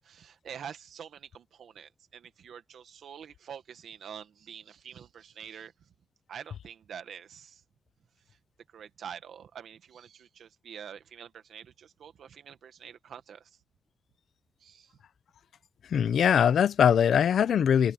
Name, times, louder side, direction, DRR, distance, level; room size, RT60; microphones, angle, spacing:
voice 1, 0.0-5.7 6.3-7.6 8.7-13.5 14.6-15.0, right 8 dB, 85° right, 1.8 m, -46 dB
voice 2, 15.9-17.9, left 8 dB, 75° left, 0.7 m, -22 dB
open air
wide cardioid pair, 175°, 0 cm